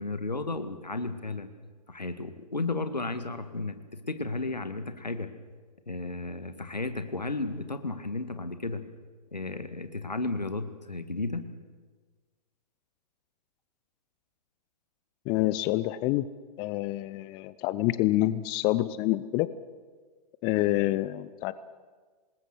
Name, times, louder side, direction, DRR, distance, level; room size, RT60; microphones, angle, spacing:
voice 1, 0.0-1.5 1.9-5.3 5.9-8.8 9.3-11.4, left 3 dB, 80° left, 9 dB, 2.0 m, -33 dB
voice 2, 15.3-16.3 16.6-19.5 20.4-21.5, left 16 dB, 20° left, 16 dB, 0.6 m, -27 dB
26.5 x 20.0 x 6.5 m, 1.4 s
figure-of-eight pair, 115°, 21 cm